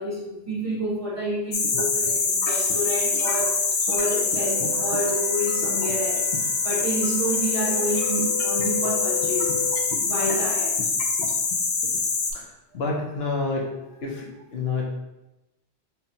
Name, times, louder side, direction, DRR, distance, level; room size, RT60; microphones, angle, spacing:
voice 1, 0.0-3.6 3.9-9.6 10.0-10.8, right 1 dB, 15° right, -6 dB, 0.9 m, -29 dB
sound 1, 1.5-12.3, left 4 dB, 55° left, 0.6 m, -24 dB
Wind instrument woodwind instrument, 4.4-9.9, left 6 dB, 65° right, 1.4 m, -34 dB
voice 2, 12.7-13.7 14.0-14.8, left 3 dB, 70° left, -2 dB, 1.0 m, -28 dB
5.4 x 2.3 x 2.7 m, 0.98 s
omnidirectional pair, 1.1 m